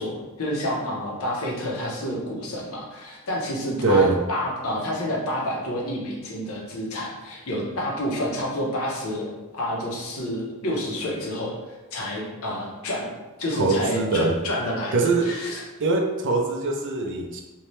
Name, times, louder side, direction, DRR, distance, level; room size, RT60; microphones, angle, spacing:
voice 1, 0.0-9.3 9.5-11.5 11.9-13.1 13.4-15.6, equal, 70° left, -2 dB, 0.7 m, -29 dB
voice 2, 3.8-4.2 13.5-14.3 14.9-15.3 15.8-17.4, right 3 dB, 60° right, 2 dB, 0.4 m, -22 dB
2.7 x 2.1 x 3.1 m, 1.1 s
head